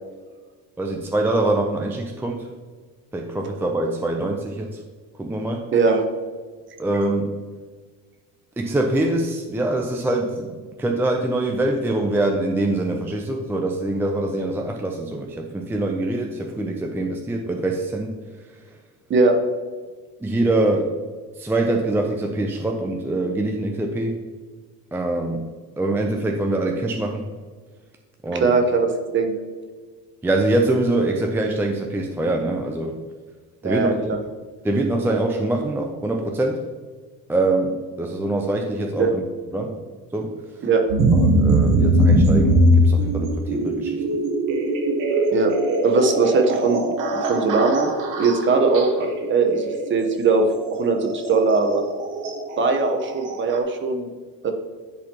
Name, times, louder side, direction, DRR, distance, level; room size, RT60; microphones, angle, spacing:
voice 1, 0.8-2.5 3.1-4.8 5.2-5.7 6.8-7.3 8.6-18.1 18.5-18.8 20.2-20.9 21.4-24.2 24.9-25.5 25.8-27.3 28.2-28.5 30.2-33.0 33.6-34.2 34.6-36.6 37.3-39.2 39.5-39.8 40.1-40.3 41.1-44.2, right 2 dB, 5° right, 2 dB, 0.4 m, -24 dB
voice 2, 5.7-6.1 19.1-19.3 28.3-29.3 33.6-34.2 39.0-39.1 40.6-40.8 45.3-45.5 45.8-46.8 47.2-47.9 48.2-50.5 50.7-51.8 52.6-54.1 54.4-54.5, right 4 dB, 35° right, 5 dB, 1.0 m, -20 dB
sound 1, 40.9-53.6, right 1 dB, 70° right, 1.3 m, -21 dB
10.5 x 4.1 x 2.9 m, 1.5 s
cardioid pair, 120°, 33 cm